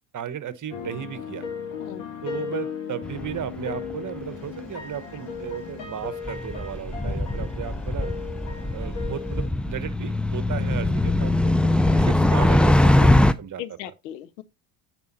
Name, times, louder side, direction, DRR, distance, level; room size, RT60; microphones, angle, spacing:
voice 1, 0.1-1.5 2.2-8.1 8.7-13.9, right 9 dB, 35° right, 1.2 m, -35 dB
sound 1, 0.7-9.5, left 6 dB, 60° left, 2.9 m, -36 dB
voice 2, 1.8-2.1 7.0-7.5 10.6-11.5 13.6-14.4, left 12 dB, 85° left, 0.9 m, -40 dB
sound 2, 3.0-3.6 3.9-4.0 6.1-13.3, left 1 dB, ahead, 0.4 m, -21 dB
9.6 x 4.5 x 4.1 m
hypercardioid pair, 70°, 49 cm